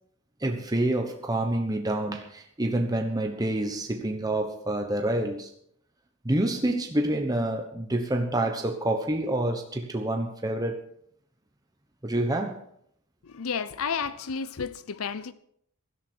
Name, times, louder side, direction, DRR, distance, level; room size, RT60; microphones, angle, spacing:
voice 1, 0.4-5.5 6.2-10.8 12.0-12.6, right 1 dB, 15° right, 1.1 m, -27 dB
voice 2, 13.3-15.3, left 6 dB, 75° left, 0.6 m, -31 dB
16.5 x 12.5 x 4.6 m
head